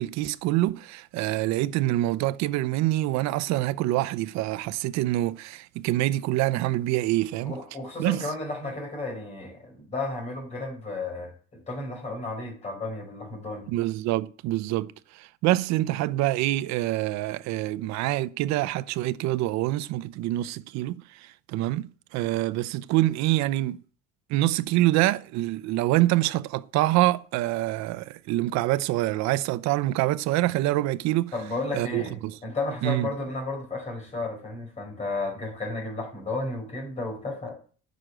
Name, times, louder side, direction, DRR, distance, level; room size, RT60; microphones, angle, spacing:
voice 1, 0.0-7.6 8.0-8.2 13.7-23.8 24.3-31.3 31.7-32.4 32.8-33.1, right 16 dB, 60° right, 0.7 m, -26 dB
voice 2, 7.4-11.3 11.7-13.7 31.3-37.6, left 2 dB, 20° left, 4.9 m, -33 dB
10.0 x 6.5 x 7.7 m
cardioid pair, 170°, 32 cm